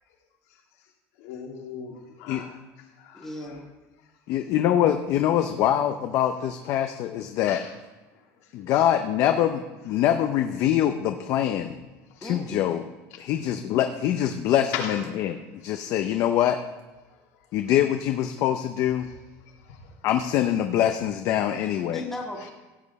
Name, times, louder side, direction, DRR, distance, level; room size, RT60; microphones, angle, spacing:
voice 1, 1.2-2.5 3.0-3.3 7.5-7.6 14.7-15.0 15.6-15.9 19.7-19.8, left 7 dB, 85° left, 0 dB, 2.3 m, -36 dB
voice 2, 3.1-3.7 12.2-12.7 21.9-22.5, left 2 dB, 5° left, -2 dB, 1.7 m, -36 dB
voice 3, 4.3-7.6 8.5-11.8 12.2-12.8 13.2-16.6 17.5-19.1 20.0-22.0, left 11 dB, 45° left, 6 dB, 0.6 m, -24 dB
16.0 x 7.7 x 4.1 m, 1.2 s
cardioid pair, 165°, 7 cm